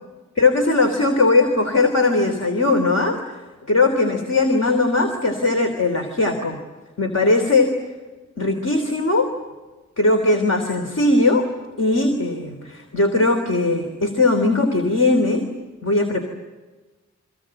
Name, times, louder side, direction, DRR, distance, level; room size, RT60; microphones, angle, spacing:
voice 1, 0.4-3.2 3.7-6.6 7.0-7.7 8.4-9.3 10.0-11.4 11.8-15.5 15.8-16.2, left 2 dB, 55° left, 4 dB, 3.2 m, -19 dB
28.0 x 25.0 x 7.8 m, 1.2 s
cardioid pair, 55°, 31 cm